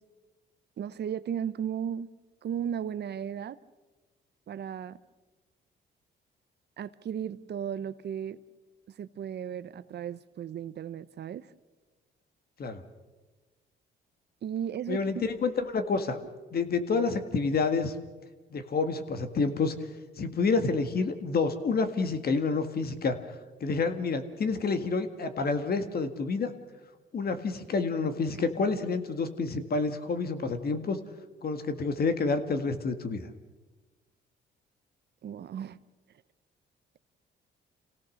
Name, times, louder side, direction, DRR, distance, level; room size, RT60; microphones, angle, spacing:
voice 1, 0.8-2.1 2.4-3.6 4.5-5.0 6.8-8.4 9.0-11.5 14.4-15.3 35.2-35.8, right 9 dB, 55° right, 15 dB, 0.8 m, -35 dB
voice 2, 14.9-16.2 16.5-18.0 18.5-19.8 20.2-23.4 23.6-26.5 27.1-31.0 31.4-33.3, left 4 dB, 50° left, 9 dB, 1.9 m, -28 dB
27.0 x 17.0 x 6.5 m, 1.2 s
cardioid pair, 90°, 20 cm